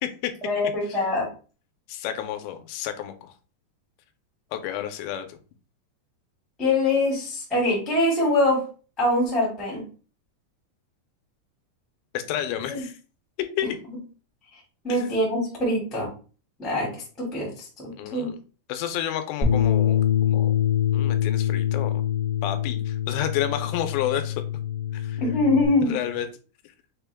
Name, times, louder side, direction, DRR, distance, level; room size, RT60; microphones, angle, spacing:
voice 1, 0.4-1.3 6.6-8.6 9.0-9.8 12.7-12.8 14.8-16.1 16.6-17.7 18.1-18.3 25.2-25.9, left 2 dB, ahead, -4 dB, 0.3 m, -23 dB
voice 2, 1.9-3.3 4.5-5.4 12.1-12.9 13.6-13.8 14.9-15.1 18.0-18.4 18.7-20.5 20.9-21.9 22.4-24.4 24.9-25.2 25.8-26.3, left 11 dB, 90° left, 8 dB, 2.9 m, -30 dB
Bass guitar, 19.4-25.7, left 10 dB, 50° left, 0.7 m, -24 dB
6.5 x 2.2 x 3.4 m, 0.37 s
omnidirectional pair, 4.9 m